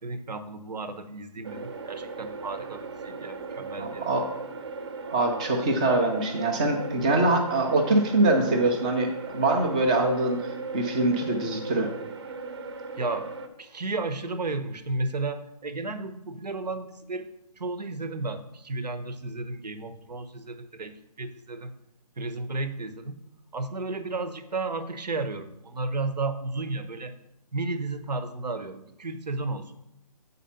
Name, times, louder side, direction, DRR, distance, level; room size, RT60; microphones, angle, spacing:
voice 1, 0.0-4.2 13.0-13.3 13.6-17.3 17.6-21.7 22.2-23.2 23.5-27.2 27.5-29.7, right 3 dB, 85° right, 11 dB, 1.0 m, -33 dB
sound 1, 1.4-13.5, right 4 dB, 40° right, 0.8 m, -38 dB
voice 2, 3.8-4.3 5.1-11.9, right 2 dB, 10° right, 3 dB, 0.4 m, -24 dB
8.2 x 4.1 x 5.7 m, 0.84 s
hypercardioid pair, 160°, 21 cm